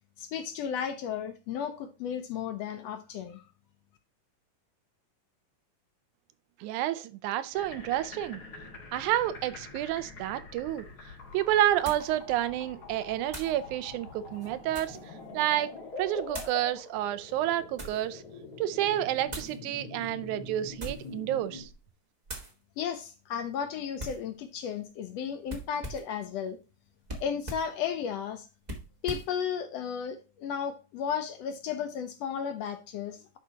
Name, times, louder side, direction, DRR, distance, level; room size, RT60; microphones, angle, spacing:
voice 1, 0.2-3.4 22.8-26.6 27.2-28.4 29.0-33.4, left 7 dB, 75° left, 1.6 m, -34 dB
voice 2, 6.6-8.4 8.9-10.9 11.3-15.0 15.3-15.7 16.0-18.2 18.6-21.7, right 13 dB, 85° right, 2.1 m, -29 dB
sound 1, 7.5-21.6, left 3 dB, 35° left, 2.3 m, -45 dB
sound 2, 10.7-10.8 11.8-12.1 13.3-13.6 14.3-15.1 16.3-16.6 17.4-18.1 19.3-19.6 20.7-21.2 21.6-21.8 22.3-22.5 24.0-24.3 25.5-26.2 27.1-27.7 28.6-29.3, right 1 dB, 45° right, 0.5 m, -41 dB
11.0 x 4.6 x 2.8 m
omnidirectional pair, 3.4 m